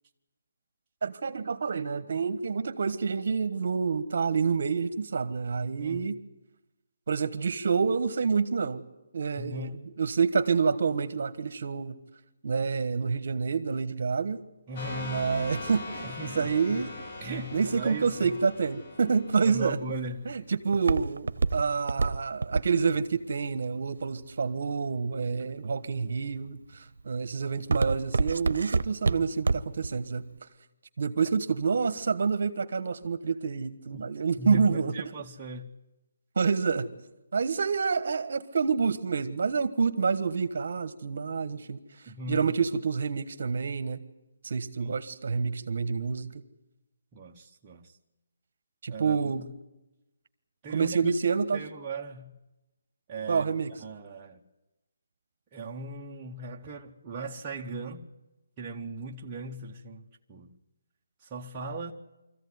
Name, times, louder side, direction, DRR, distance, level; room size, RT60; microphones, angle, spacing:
voice 1, 1.0-6.2 7.1-8.8 9.1-11.9 12.4-14.4 15.0-16.9 17.5-19.8 20.2-30.3 31.0-34.9 36.4-36.9 37.3-41.8 42.3-44.0 44.4-46.3 48.8-49.4 50.7-51.6 53.3-53.7, right 5 dB, 55° right, 1.3 m, -28 dB
voice 2, 5.8-6.2 9.4-9.8 14.7-15.3 16.0-16.8 17.2-18.4 19.4-20.3 33.9-34.0 34.4-35.7 42.1-42.5 44.8-45.0 47.1-47.9 48.9-49.5 50.6-51.1 51.5-52.4 53.1-54.4 55.5-58.1 58.6-60.5 61.2-61.9, right 2 dB, 15° right, 1.0 m, -38 dB
sound 1, 14.8-20.2, left 2 dB, 35° left, 2.3 m, -41 dB
Walk footsteps, 19.6-24.7 25.3-25.8 26.3-26.7 27.0-29.9 30.2-30.3, right 3 dB, 75° right, 0.8 m, -28 dB
24.0 x 14.5 x 9.6 m
hypercardioid pair, 170°, 0 cm